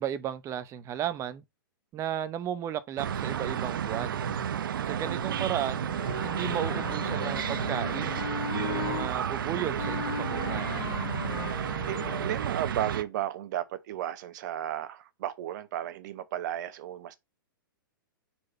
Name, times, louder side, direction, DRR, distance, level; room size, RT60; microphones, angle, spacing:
voice 1, 0.0-1.4 1.9-4.2 4.9-8.2 8.7-10.7, right 10 dB, 25° right, 0.8 m, -34 dB
sound 1, 3.0-13.0, right 8 dB, 70° right, 0.7 m, -31 dB
voice 2, 4.5-5.0 11.2-17.1, right 12 dB, 55° right, 1.0 m, -35 dB
Wind instrument woodwind instrument, 5.9-9.1 9.8-12.5, left 8 dB, 80° left, 0.6 m, -37 dB
4.7 x 4.4 x 5.7 m
hypercardioid pair, 125°, 12 cm